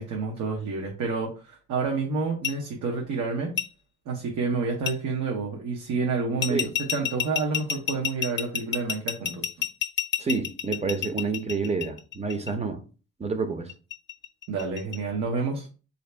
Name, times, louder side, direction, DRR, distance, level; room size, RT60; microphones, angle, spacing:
voice 1, 0.0-3.5 4.1-6.6 6.9-9.4 14.5-15.7, right 4 dB, 80° right, 0.8 m, -29 dB
sound 1, 2.4-2.5 3.6-3.7 4.9-5.0 6.4-12.5 13.7-15.0, left 10 dB, 40° left, 0.5 m, -29 dB
voice 2, 10.2-12.8 13.2-13.7, right 4 dB, 20° right, 0.6 m, -28 dB
3.3 x 2.7 x 3.2 m
cardioid pair, 90°, 30 cm